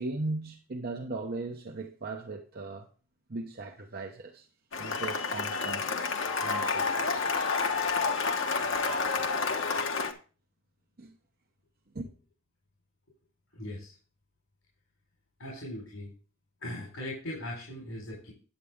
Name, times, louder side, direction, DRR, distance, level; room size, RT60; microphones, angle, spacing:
voice 1, 0.0-2.9 3.3-4.5 4.8-6.0 6.4-7.5 11.0-11.2 11.9-12.1, right 2 dB, 50° right, 0.9 m, -38 dB
Cheering / Applause, 4.7-10.1, left 4 dB, 65° left, 1.2 m, -29 dB
voice 2, 13.5-13.9 15.4-16.1 16.6-18.3, left 1 dB, 85° left, 4.4 m, -39 dB
10.0 x 8.2 x 3.6 m
head